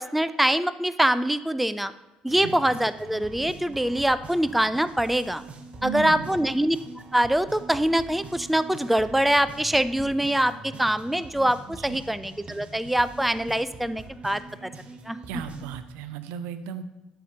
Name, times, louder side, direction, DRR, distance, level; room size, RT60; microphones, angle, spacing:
voice 1, 0.0-1.9 2.2-5.4 5.8-6.8 7.1-14.7 15.1-15.2, right 1 dB, ahead, 14 dB, 0.3 m, -24 dB
sound 1, 2.3-15.8, right 3 dB, 35° right, 1.0 m, -43 dB
voice 2, 5.8-6.5 11.8-12.0 15.3-16.8, right 8 dB, 65° right, 12 dB, 0.5 m, -35 dB
12.0 x 5.7 x 2.8 m, 1.1 s
figure-of-eight pair, 50°, 3 cm